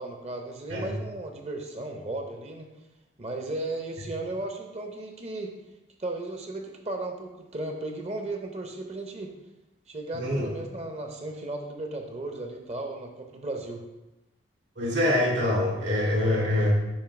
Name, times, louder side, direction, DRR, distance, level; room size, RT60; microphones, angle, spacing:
voice 1, 0.0-2.7 3.2-5.5 6.0-9.3 9.9-13.8, right 2 dB, 35° right, 3 dB, 0.7 m, -35 dB
voice 2, 10.1-10.5 14.8-16.8, left 1 dB, 80° right, -4 dB, 2.4 m, -24 dB
7.2 x 2.8 x 5.9 m, 0.99 s
head